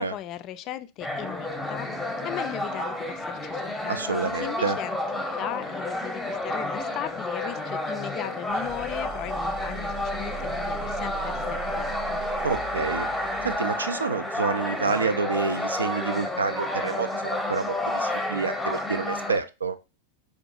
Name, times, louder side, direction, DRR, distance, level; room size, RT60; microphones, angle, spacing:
voice 1, 0.0-4.0 4.3-12.2, left 12 dB, 35° left, 0.3 m, -37 dB
sound 1, 1.0-19.4, left 1 dB, ahead, 0.7 m, -30 dB
voice 2, 3.9-4.8 12.4-13.1 13.4-19.8, right 4 dB, 75° right, 0.3 m, -28 dB
sound 2, 8.5-13.6, right 6 dB, 35° right, 0.6 m, -40 dB
4.5 x 2.4 x 2.8 m
figure-of-eight pair, 90°, 0 cm